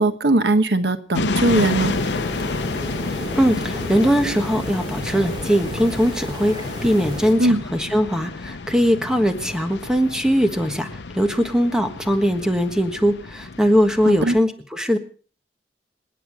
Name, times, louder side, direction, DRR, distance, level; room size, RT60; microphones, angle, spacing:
voice 1, 0.0-1.9 7.4-7.6 14.0-14.3, right 2 dB, 70° right, 10 dB, 1.2 m, -19 dB
sound 1, 1.1-14.4, left 3 dB, 80° left, 0.7 m, -30 dB
sound 2, 1.4-7.3, equal, 25° right, 2.4 m, -33 dB
voice 2, 3.3-15.0, equal, 5° right, 6 dB, 1.4 m, -20 dB
28.0 x 9.3 x 4.9 m, 0.41 s
head